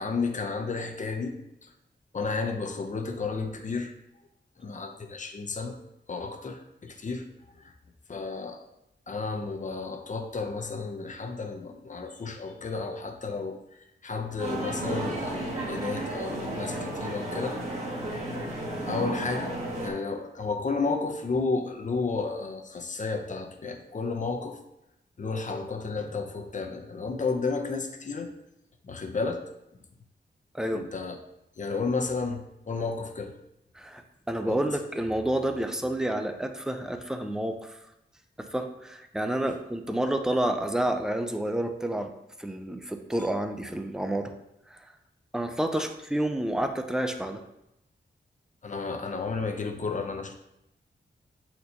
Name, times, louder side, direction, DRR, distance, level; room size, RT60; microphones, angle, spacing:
voice 1, 0.0-1.7 2.1-3.9 4.6-5.8 6.1-7.7 8.1-8.6 9.1-17.6 18.9-24.6 25.2-28.3 28.8-29.4 30.7-31.2 31.6-33.4 34.5-34.7 39.5-39.6 48.6-50.3, left 4 dB, 40° left, 5 dB, 0.7 m, -32 dB
sound 1, 14.4-19.9, right 1 dB, 35° right, 1.5 m, -33 dB
voice 2, 34.3-37.8 38.4-42.1 42.4-44.3 44.7-44.8 45.3-47.4, right 1 dB, 5° right, 6 dB, 0.5 m, -29 dB
7.9 x 4.3 x 2.8 m, 0.85 s
wide cardioid pair, 120°, 19 cm